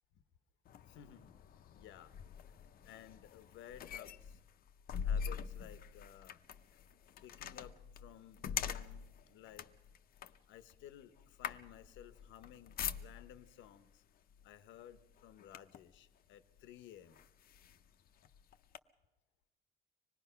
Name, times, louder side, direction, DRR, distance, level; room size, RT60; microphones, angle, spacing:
sound 1, 0.7-13.5 14.3-14.5 14.9-16.0 16.6-16.7 17.1-18.8, left 8 dB, 50° left, 0.7 m, -44 dB
voice 1, 0.9-1.4 1.7-2.1 2.8-4.4 5.0-6.4 7.2-9.7 10.5-14.0 14.4-17.2, left 10 dB, 90° left, 12 dB, 0.9 m, -56 dB
25.0 x 19.5 x 5.7 m, 1.1 s
cardioid pair, 150°, 19 cm